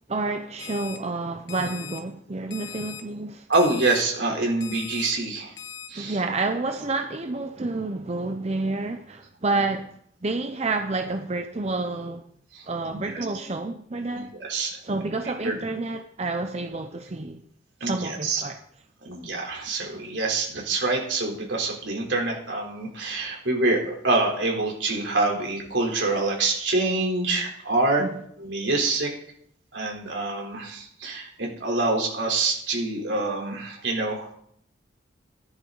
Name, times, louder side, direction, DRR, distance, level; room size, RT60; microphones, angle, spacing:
voice 1, 0.1-3.5 6.0-10.0 10.2-12.2 12.7-14.3 14.8-17.4 17.8-18.6 23.2-23.3 28.0-28.2, right 3 dB, 35° right, 0.6 m, -29 dB
Alarm, 0.6-1.0 1.5-2.0 2.5-3.0 3.5-4.0 4.6-5.1 5.6-5.9, left 8 dB, 85° left, 1.5 m, -39 dB
voice 2, 3.5-5.5 5.9-6.2 12.5-12.6 12.9-13.0 14.1-14.8 15.4-15.5 17.8-18.4 19.0-28.0 28.4-29.1 29.7-34.3, right 2 dB, 70° right, 3.8 m, -26 dB
15.0 x 11.0 x 4.0 m
head